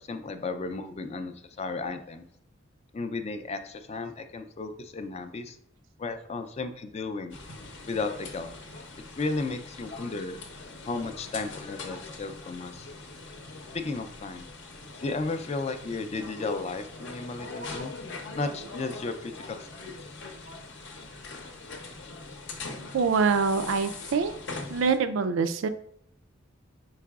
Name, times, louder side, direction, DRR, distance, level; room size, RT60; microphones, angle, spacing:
voice 1, 0.0-2.3 2.9-5.6 6.0-7.4 7.8-8.5 9.2-10.4 10.9-12.9 13.7-14.5 15.0-17.9 18.3-19.9, left 3 dB, 30° left, 8 dB, 0.4 m, -34 dB
sound 1, 7.3-25.0, left 3 dB, 60° left, 0.7 m, -42 dB
voice 2, 22.9-24.4 24.7-25.7, right 5 dB, 80° right, 10 dB, 0.4 m, -25 dB
4.7 x 4.6 x 2.3 m, 0.69 s
head